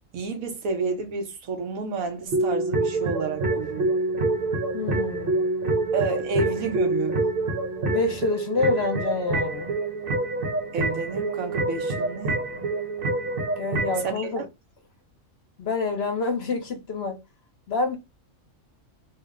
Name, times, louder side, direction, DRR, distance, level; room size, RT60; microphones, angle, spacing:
voice 1, 0.1-4.0 5.9-7.2 10.7-12.3 14.0-14.4, right 4 dB, 85° right, 1.2 m, -30 dB
sound 1, 2.3-14.1, right 2 dB, 50° right, 0.9 m, -26 dB
voice 2, 4.7-5.4 7.9-9.7 13.6-14.4 15.6-17.2 17.7-18.0, left 3 dB, 55° left, 0.9 m, -27 dB
2.9 x 2.1 x 3.4 m
omnidirectional pair, 1.4 m